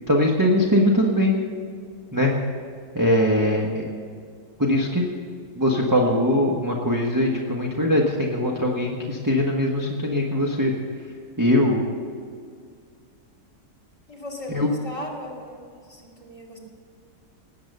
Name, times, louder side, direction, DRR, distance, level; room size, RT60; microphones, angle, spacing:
voice 1, 0.1-1.4 2.1-2.3 2.9-3.9 4.6-5.1 5.6-10.7 11.4-11.8 14.5-14.7, left 1 dB, 10° right, -1 dB, 1.3 m, -21 dB
voice 2, 14.1-16.6, left 1 dB, 20° left, 0 dB, 2.7 m, -37 dB
18.5 x 8.5 x 6.7 m, 2.1 s
omnidirectional pair, 1.8 m